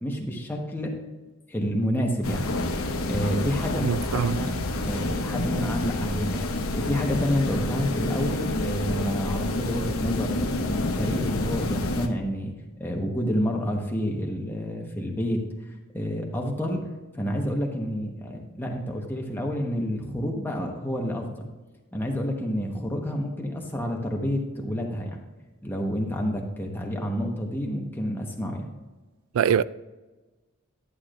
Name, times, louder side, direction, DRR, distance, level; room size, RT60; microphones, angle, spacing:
voice 1, 0.0-0.9 1.5-2.5 2.7-4.6 4.8-12.5 12.8-15.4 15.9-16.8 17.2-21.5 21.9-25.2 25.6-28.7, equal, 10° left, 1.1 m, -29 dB
sound 1, 2.2-12.1, left 2 dB, 85° left, 0.9 m, -28 dB
voice 2, 3.8-4.4 29.3-29.6, right 8 dB, 85° right, 0.3 m, -23 dB
11.0 x 8.4 x 2.5 m
head